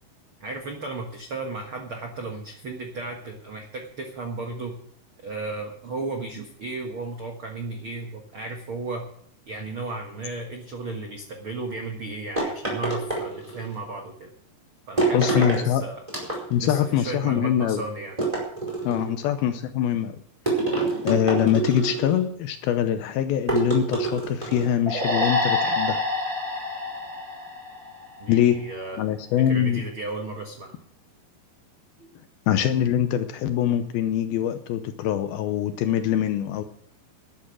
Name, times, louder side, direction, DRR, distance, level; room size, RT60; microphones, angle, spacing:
voice 1, 0.4-4.8 5.2-9.1 9.5-14.3 14.9-16.0 16.6-18.2 18.9-19.1 28.2-29.0 29.4-30.8 32.0-32.1, right 3 dB, 85° right, 3 dB, 1.1 m, -34 dB
sound 1, 12.4-13.7 15.0-15.6 16.1-16.8 18.2-19.1 20.5-22.2 23.5-24.8, right 3 dB, 10° right, 4.5 m, -26 dB
voice 2, 15.1-15.8 16.5-17.8 18.8-20.2 21.0-26.0 28.3-28.6 29.0-29.8 32.5-36.6, left 10 dB, 80° left, 9 dB, 2.3 m, -23 dB
sound 2, 24.9-28.3, left 2 dB, 30° right, 1.3 m, -27 dB
12.5 x 11.0 x 6.3 m, 0.63 s
omnidirectional pair, 5.0 m